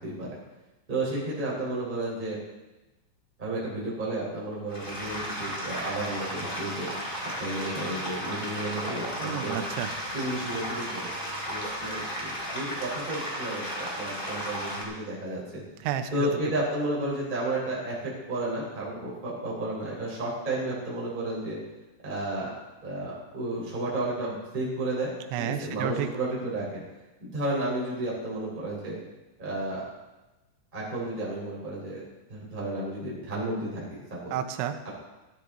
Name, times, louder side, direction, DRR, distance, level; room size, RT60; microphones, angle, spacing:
voice 1, 0.9-2.4 3.4-6.9 7.2-9.6 10.1-11.1 11.5-15.6 16.1-21.6 22.0-22.5 22.8-25.1 25.4-26.8 27.2-29.0 29.4-29.8 30.7-32.0 32.3-34.3 34.8-34.9, right 1 dB, 10° right, -6 dB, 3.5 m, -32 dB
sound 1, 4.7-14.8, equal, 35° left, 0.8 m, -34 dB
voice 2, 9.2-9.9 15.8-16.3 25.3-26.1 34.3-34.7, right 10 dB, 80° right, 7 dB, 3.0 m, -31 dB
13.5 x 13.0 x 3.8 m, 1.1 s
omnidirectional pair, 5.5 m